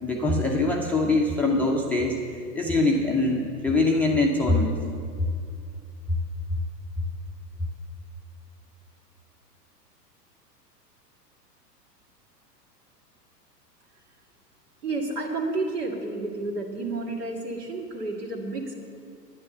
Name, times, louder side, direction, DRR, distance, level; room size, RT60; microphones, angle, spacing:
voice 1, 0.0-2.2 2.5-4.8, left 2 dB, 5° left, -1 dB, 0.5 m, -23 dB
voice 2, 14.8-18.8, right 2 dB, 70° right, 2 dB, 2.3 m, -30 dB
11.0 x 9.8 x 6.7 m, 2.3 s
figure-of-eight pair, 100°, 49 cm